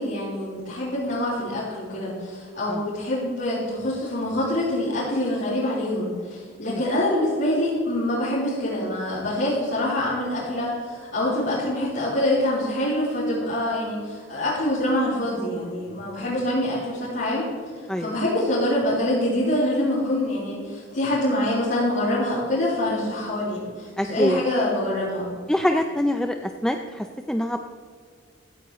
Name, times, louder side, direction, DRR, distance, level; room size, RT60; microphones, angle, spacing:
voice 1, 0.0-17.5 18.0-25.3, left 1 dB, 55° left, -10 dB, 4.0 m, -25 dB
voice 2, 17.9-18.2 24.0-24.4 25.5-26.3 26.6-27.6, left 1 dB, 5° left, 5 dB, 0.4 m, -24 dB
16.5 x 14.0 x 3.1 m, 2.1 s
head